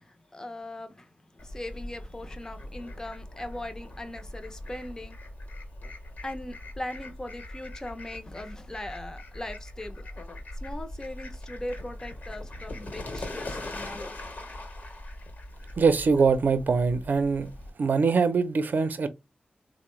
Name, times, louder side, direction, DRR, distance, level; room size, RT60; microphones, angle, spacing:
voice 1, 0.0-5.2 6.2-10.0 10.6-14.1, left 1 dB, 20° left, 0.5 m, -40 dB
Fowl, 1.4-17.7, left 1 dB, 60° left, 1.0 m, -41 dB
voice 2, 15.8-17.5 17.8-19.1, right 5 dB, 65° right, 0.5 m, -23 dB
3.8 x 2.1 x 3.0 m
wide cardioid pair, 110°, 3 cm